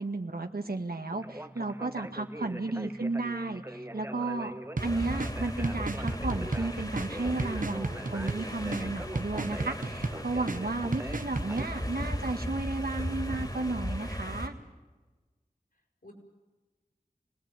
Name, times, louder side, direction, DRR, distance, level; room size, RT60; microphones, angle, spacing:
voice 1, 0.0-4.5 4.8-14.5, right 2 dB, 75° right, 5 dB, 1.9 m, -33 dB
Conversation, 1.1-11.6, right 1 dB, 15° right, 0.9 m, -43 dB
voice 2, 2.4-2.9 5.2-5.8 15.7-16.1, left 1 dB, 65° left, 1 dB, 7.0 m, -54 dB
sound 1, 4.8-14.5, equal, 25° left, 3.4 m, -37 dB
sound 2, 4.8-11.7, right 3 dB, 60° right, 1.1 m, -36 dB
26.5 x 19.0 x 9.2 m, 1.3 s
wide cardioid pair, 45°, 16 cm